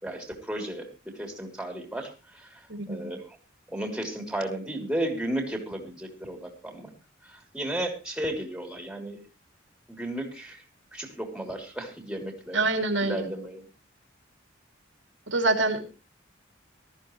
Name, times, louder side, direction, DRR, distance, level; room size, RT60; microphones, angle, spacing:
voice 1, 0.0-3.4 3.7-6.9 7.2-9.2 9.9-10.6 10.9-12.6 13.0-13.7, right 1 dB, 5° right, 3 dB, 3.3 m, -34 dB
voice 2, 2.7-3.1 12.5-13.3 15.3-15.8, right 2 dB, 65° right, 6 dB, 2.6 m, -26 dB
18.5 x 13.5 x 3.1 m, 0.30 s
head